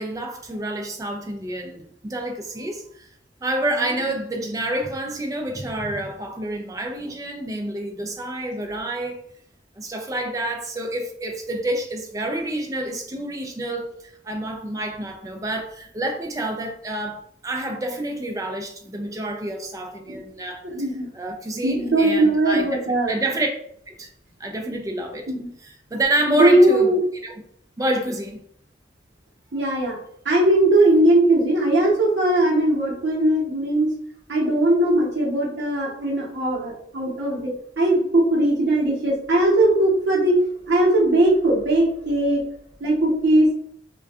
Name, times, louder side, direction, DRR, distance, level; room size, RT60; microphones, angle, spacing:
voice 1, 0.0-3.1 3.4-9.2 9.8-20.6 21.1-22.7 23.1-23.5 23.9-24.1 24.4-25.3 25.6-26.9 27.2-27.3 27.8-28.4, right 1 dB, 20° right, 2 dB, 0.3 m, -28 dB
voice 2, 20.6-21.1 21.6-23.2 25.3-25.5 26.3-27.0 29.5-30.0 30.2-33.9 34.3-40.4 40.7-42.5 42.8-43.5, right 1 dB, 80° right, -4 dB, 0.8 m, -19 dB
2.6 x 2.2 x 2.3 m, 0.68 s
head